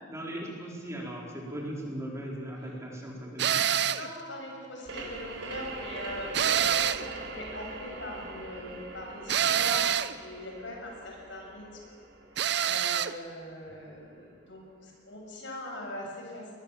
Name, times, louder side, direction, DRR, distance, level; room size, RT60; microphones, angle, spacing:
voice 1, 0.1-3.7, right 1 dB, 15° right, -2 dB, 4.4 m, -38 dB
sound 1, 3.4-4.1 6.3-7.1 9.3-10.2 12.4-13.1, right 9 dB, 60° right, 0.7 m, -26 dB
voice 2, 3.9-11.7 12.6-16.5, left 1 dB, 75° left, 0 dB, 6.8 m, -41 dB
sound 2, 4.9-14.2, right 2 dB, 85° right, 4.2 m, -43 dB
23.5 x 20.0 x 7.3 m, 2.2 s
head